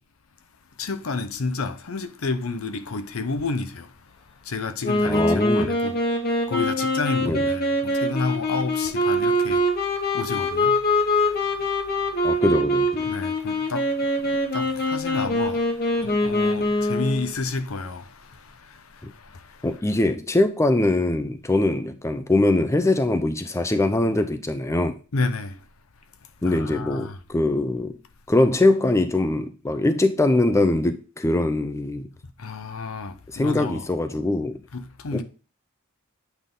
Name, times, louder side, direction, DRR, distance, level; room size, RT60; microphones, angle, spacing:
voice 1, 0.8-3.9 4.4-6.0 6.5-9.6 10.1-10.8 11.2-12.6 13.1-19.7 25.1-25.6 26.4-27.2 32.4-33.9 34.7-35.2, left 3 dB, 75° left, 0.7 m, -31 dB
Wind instrument woodwind instrument, 4.8-17.3, left 1 dB, 50° left, 1.4 m, -23 dB
voice 2, 5.0-5.7 7.2-7.4 12.2-13.1 19.0-19.1 19.6-25.0 26.4-28.0 28.3-32.1 33.3-34.6 35.1-35.2, left 2 dB, 15° left, 0.5 m, -22 dB
8.2 x 3.6 x 3.8 m
head